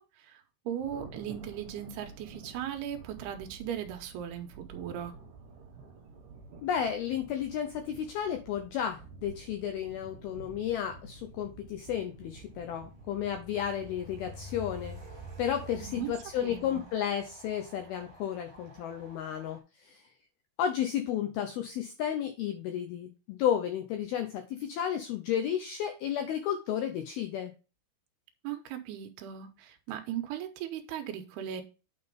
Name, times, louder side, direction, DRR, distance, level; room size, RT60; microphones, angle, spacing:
voice 1, 0.0-5.1 15.8-16.1 16.4-16.8 28.4-31.6, right 10 dB, 75° right, 2.4 m, -38 dB
Thunder, 0.8-16.8, right 5 dB, 60° right, 2.5 m, -51 dB
voice 2, 6.6-15.0 15.4-20.0 20.6-27.5, left 9 dB, 85° left, 2.2 m, -33 dB
Train, 11.2-19.6, equal, 20° right, 2.5 m, -49 dB
9.1 x 4.1 x 5.2 m
omnidirectional pair, 5.3 m